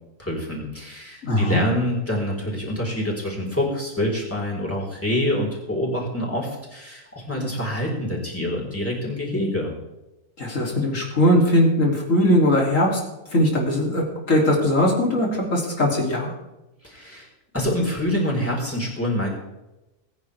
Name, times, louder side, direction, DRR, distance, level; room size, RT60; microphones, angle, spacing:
voice 1, 0.2-9.7 16.8-17.3 17.5-19.3, left 1 dB, 10° left, -2 dB, 4.1 m, -26 dB
voice 2, 1.2-1.6 10.4-13.0 13.3-16.3, left 1 dB, 75° left, -1 dB, 3.4 m, -20 dB
22.0 x 9.6 x 3.4 m, 0.99 s
omnidirectional pair, 1.4 m